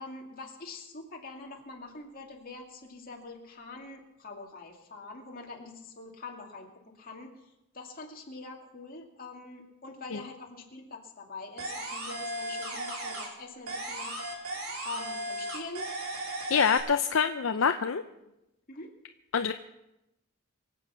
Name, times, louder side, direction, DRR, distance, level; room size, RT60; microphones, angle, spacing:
voice 1, 0.0-7.3 7.7-14.1 14.8-15.9 17.8-17.9 18.2-18.3 18.7-18.9, left 3 dB, 40° left, 0 dB, 2.4 m, -44 dB
sound 1, 11.6-13.4 13.7-16.8, right 1 dB, 85° right, 4.0 m, -36 dB
voice 2, 16.5-18.0 19.3-19.5, left 6 dB, 65° left, 8 dB, 0.6 m, -25 dB
24.0 x 8.2 x 5.8 m, 0.91 s
head